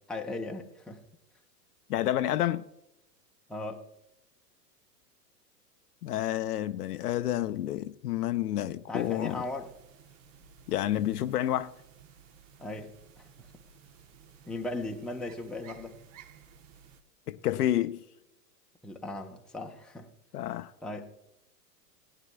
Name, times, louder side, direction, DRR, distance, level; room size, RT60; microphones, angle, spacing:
voice 1, 0.1-1.0 3.5-3.8 8.9-9.7 12.6-13.5 14.5-16.0 18.8-20.1 20.8-21.1, left 2 dB, ahead, 0.7 m, -38 dB
voice 2, 1.9-2.7 6.0-9.4 10.7-11.7 17.3-18.0 20.3-20.7, left 13 dB, 70° left, 0.7 m, -29 dB
sound 1, 8.9-17.0, right 7 dB, 50° right, 1.1 m, -55 dB
18.5 x 9.9 x 2.3 m
hypercardioid pair, 100°, 48 cm